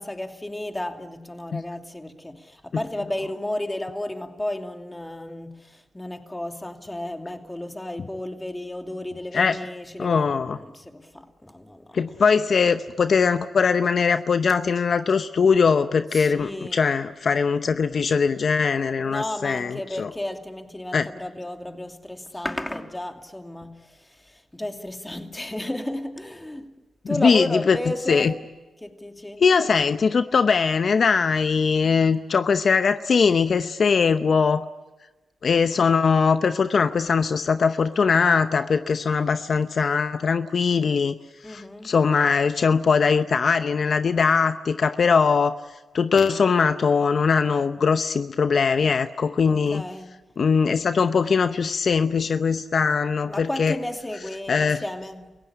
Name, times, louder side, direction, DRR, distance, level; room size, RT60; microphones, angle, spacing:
voice 1, 0.0-12.2 16.1-16.9 19.0-28.4 28.8-29.9 33.9-34.3 41.4-41.9 49.5-50.2 53.3-55.4, left 1 dB, 15° left, 2.7 m, -33 dB
voice 2, 10.0-10.6 11.9-20.1 20.9-21.1 27.0-27.8 28.1-28.3 29.4-34.7 35.4-41.2 41.4-45.5 45.9-49.8 50.4-53.8 54.5-54.8, left 5 dB, 60° left, 0.7 m, -21 dB
29.0 x 16.5 x 9.9 m
cardioid pair, 60°, 0 cm